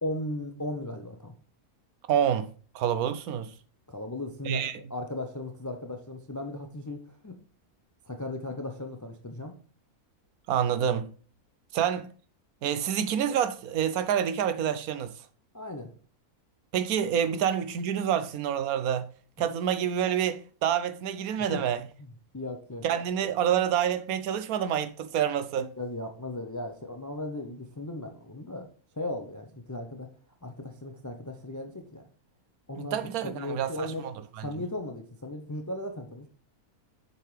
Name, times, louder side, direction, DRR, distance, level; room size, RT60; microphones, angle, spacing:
voice 1, 0.0-1.3 3.9-4.6 4.9-7.3 8.1-9.5 15.5-15.9 21.5-21.6 22.0-22.1 22.3-22.8 25.6-28.7 29.0-30.1 30.4-32.1 32.7-34.0 34.4-36.3, left 1 dB, 30° left, 0.3 m, -36 dB
voice 2, 2.1-3.5 4.4-4.8 10.5-11.1 11.7-12.1 12.6-15.1 16.7-19.1 19.4-21.8 22.8-25.7 32.8-34.4, right 9 dB, 80° right, 1.1 m, -28 dB
7.4 x 5.4 x 3.2 m
omnidirectional pair, 1.6 m